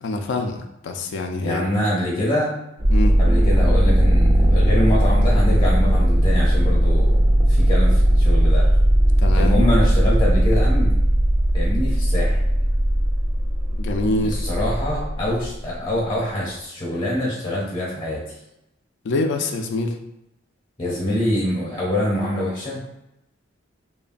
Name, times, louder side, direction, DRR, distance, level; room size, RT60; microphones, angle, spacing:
voice 1, 0.0-1.6 2.0-2.1 2.9-3.2 9.2-9.5 13.8-14.4 19.0-20.0, left 2 dB, 65° left, 5 dB, 0.4 m, -25 dB
voice 2, 1.4-2.5 3.2-8.7 9.4-10.9 11.5-12.4 14.2-18.2 20.8-22.8, left 1 dB, 30° left, -5 dB, 0.7 m, -25 dB
sound 1, 2.8-15.5, equal, 15° right, 0.3 m, -17 dB
3.0 x 2.1 x 2.4 m, 0.88 s
head